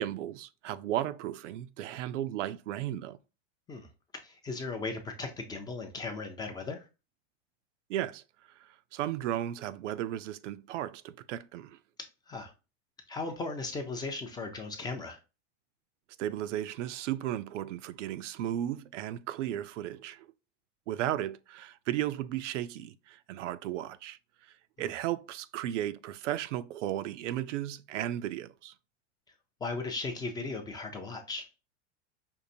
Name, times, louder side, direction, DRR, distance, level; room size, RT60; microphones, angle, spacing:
voice 1, 0.0-3.2 7.9-8.2 8.6-11.8 16.2-20.3 20.9-24.2 24.8-28.7, right 12 dB, 80° right, 0.5 m, -35 dB
voice 2, 4.2-6.9 12.3-12.5 13.1-15.2 24.8-24.9 29.6-31.5, left 3 dB, 10° left, 0.4 m, -37 dB
5.3 x 2.5 x 2.7 m
supercardioid pair, 130°, 36 cm